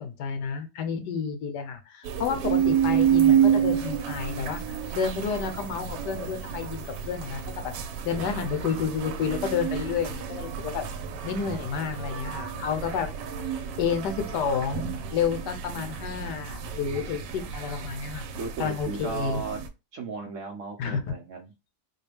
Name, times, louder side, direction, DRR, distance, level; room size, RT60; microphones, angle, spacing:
voice 1, 0.0-7.7 8.0-10.8 11.2-13.1 13.8-18.2 18.6-19.4 20.8-21.0, left 6 dB, 80° left, 7 dB, 1.3 m, -30 dB
sound 1, 2.0-19.7, right 9 dB, 90° right, 1.2 m, -29 dB
voice 2, 8.3-8.8 18.4-19.6 19.9-21.5, right 4 dB, 65° right, 2 dB, 0.8 m, -36 dB
4.4 x 2.2 x 3.3 m, 0.26 s
omnidirectional pair, 1.8 m